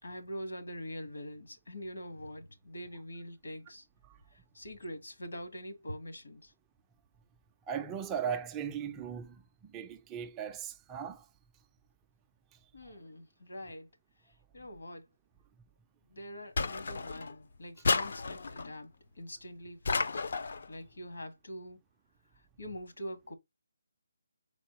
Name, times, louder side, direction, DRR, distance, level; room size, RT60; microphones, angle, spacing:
voice 1, 0.0-3.9 4.3-6.5 12.7-13.9 14.2-15.1 16.0-20.3 20.7-21.8 22.3-23.3, equal, 80° left, 1.6 m, -44 dB
voice 2, 7.7-11.3, right 7 dB, 10° right, 0.3 m, -38 dB
sound 1, 16.6-17.4 17.8-18.7 19.9-20.7, left 4 dB, 50° left, 0.4 m, -32 dB
4.2 x 4.1 x 3.0 m
hypercardioid pair, 175°, 0 cm